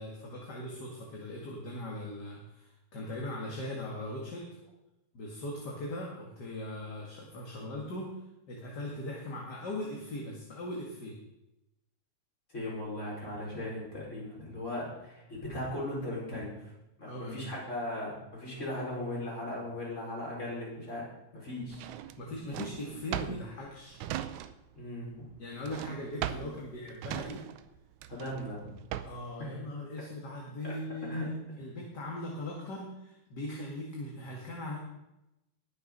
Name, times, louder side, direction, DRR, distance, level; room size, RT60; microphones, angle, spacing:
voice 1, 0.0-4.5 5.1-8.1 8.5-11.2 17.0-17.5 22.2-24.0 25.4-27.4 29.0-34.8, left 1 dB, 40° left, -2 dB, 2.1 m, -39 dB
voice 2, 12.5-16.7 17.0-21.1 21.3-21.9 24.7-25.2 26.4-26.5 28.1-28.7 29.4-29.5 30.6-30.7 31.0-31.3, left 1 dB, 25° left, -5 dB, 5.0 m, -38 dB
Drawer open or close, 21.7-24.8 25.1-29.3, right 12 dB, 85° right, 2.0 m, -39 dB
20.0 x 6.9 x 5.4 m, 0.91 s
omnidirectional pair, 3.3 m